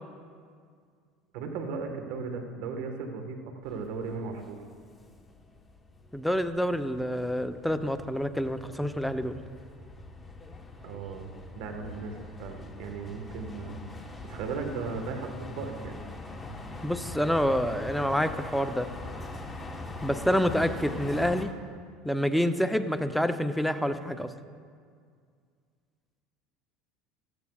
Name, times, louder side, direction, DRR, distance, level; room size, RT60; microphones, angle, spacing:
voice 1, 1.3-4.6 10.8-11.3 11.6-16.0, right 4 dB, 75° right, 5 dB, 1.4 m, -37 dB
sound 1, 3.6-21.5, left 2 dB, 20° left, 1.1 m, -43 dB
voice 2, 6.1-9.3 16.8-18.9 20.0-21.5 22.0-24.3, equal, ahead, 9 dB, 0.6 m, -27 dB
16.0 x 13.5 x 2.4 m, 2.1 s
supercardioid pair, 100°, 0 cm